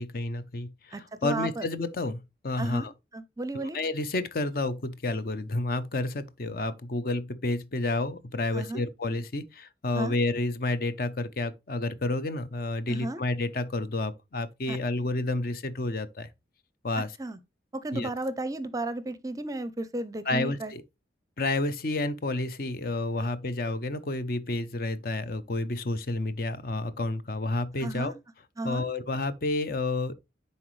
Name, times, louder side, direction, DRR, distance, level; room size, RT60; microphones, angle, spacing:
voice 1, 0.0-2.9 3.5-16.3 16.8-17.1 17.9-18.1 20.3-20.8 21.4-28.1 28.6-30.2, left 2 dB, 50° left, 0.6 m, -30 dB
voice 2, 0.9-1.7 2.6-2.9 3.1-3.8 8.5-8.8 10.0-10.2 12.9-13.2 14.7-14.8 17.0-17.4 17.7-20.7 27.8-28.1 28.6-28.8, right 2 dB, 20° right, 0.5 m, -33 dB
9.9 x 4.1 x 3.1 m
head